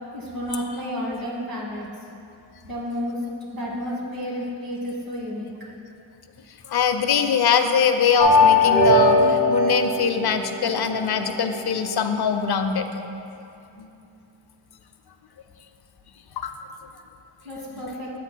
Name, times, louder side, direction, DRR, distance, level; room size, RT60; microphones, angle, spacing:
voice 1, 0.1-1.9 2.6-3.2 3.5-5.5 17.4-18.1, equal, 45° right, -4 dB, 1.4 m, -31 dB
voice 2, 6.7-12.9 13.8-13.9 16.4-16.5, left 6 dB, 55° left, 7 dB, 0.5 m, -22 dB
sound 1, 8.2-11.1, left 2 dB, 75° right, 1.3 m, -19 dB
8.2 x 8.0 x 2.2 m, 2.7 s
wide cardioid pair, 90°, 47 cm